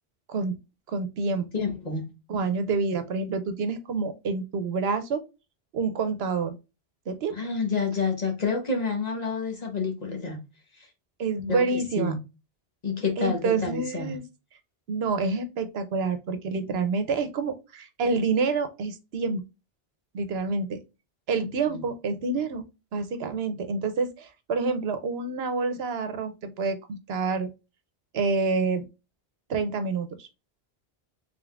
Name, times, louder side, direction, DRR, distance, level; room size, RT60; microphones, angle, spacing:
voice 1, 0.9-1.5 2.3-5.2 5.7-6.5 7.1-7.4 11.2-12.1 13.2-14.2 14.9-19.4 20.1-20.8 21.3-22.6 22.9-27.5 28.1-28.9 29.5-30.3, right 4 dB, 75° right, 0.9 m, -28 dB
voice 2, 1.5-2.0 7.3-10.4 10.7-10.9 11.5-12.2 12.8-14.2 21.7-21.8, left 4 dB, 40° left, 1.1 m, -29 dB
3.8 x 3.6 x 2.3 m
omnidirectional pair, 1.1 m